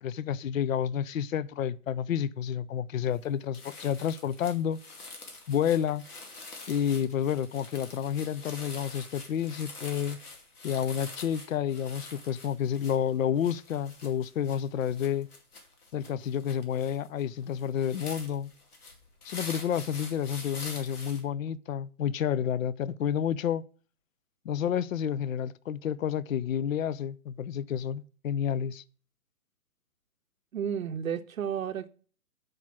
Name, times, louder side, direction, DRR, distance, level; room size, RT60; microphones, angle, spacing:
voice 1, 0.0-4.8 5.5-6.0 6.7-10.2 10.6-15.3 15.9-18.5 19.2-23.6 24.4-28.8, left 9 dB, 65° left, 0.6 m, -30 dB
sound 1, 3.1-3.3 3.5-21.2, left 3 dB, 80° left, 2.6 m, -46 dB
voice 2, 30.5-31.9, right 8 dB, 65° right, 0.7 m, -32 dB
8.5 x 5.0 x 6.0 m
hypercardioid pair, 160°, 45 cm